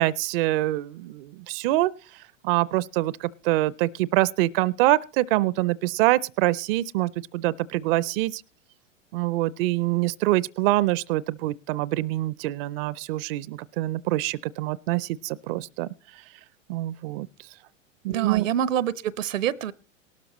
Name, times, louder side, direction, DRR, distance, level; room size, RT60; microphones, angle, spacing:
voice 1, 0.0-1.9 2.4-8.4 9.1-15.9 16.7-17.3 18.0-18.5, right 18 dB, 45° right, 21 dB, 0.5 m, -25 dB
voice 2, 18.1-19.7, right 10 dB, 75° right, 20 dB, 0.8 m, -26 dB
18.0 x 12.5 x 3.0 m, 0.33 s
hypercardioid pair, 95°, 39 cm